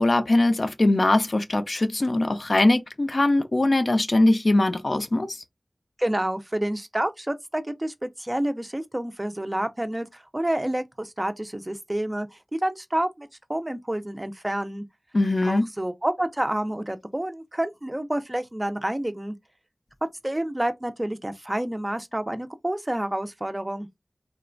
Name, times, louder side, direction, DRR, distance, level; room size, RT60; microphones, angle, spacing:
voice 1, 0.0-5.4 15.1-15.6, left 2 dB, 60° left, 0.4 m, -21 dB
voice 2, 6.0-14.8 15.4-19.4 20.2-23.9, right 1 dB, 25° right, 0.4 m, -29 dB
3.0 x 2.1 x 2.5 m
wide cardioid pair, 55°, 0 cm